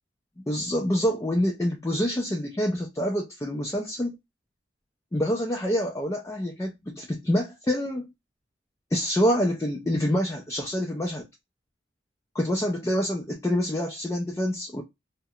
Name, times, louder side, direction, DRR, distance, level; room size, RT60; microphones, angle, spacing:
voice 1, 0.5-4.2 5.1-8.1 8.9-11.3 12.3-14.8, equal, 15° left, 0.4 m, -26 dB
2.3 x 2.1 x 2.7 m
head